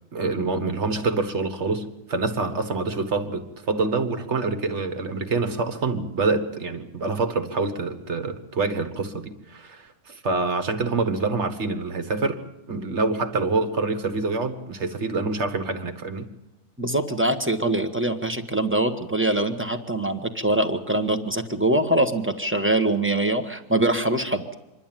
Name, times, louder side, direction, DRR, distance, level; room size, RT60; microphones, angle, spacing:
voice 1, 0.1-12.4 12.7-16.3, right 3 dB, 45° right, 8 dB, 1.7 m, -26 dB
voice 2, 16.8-24.5, right 1 dB, 10° right, 4 dB, 1.1 m, -23 dB
26.0 x 11.5 x 9.0 m, 0.97 s
omnidirectional pair, 1.7 m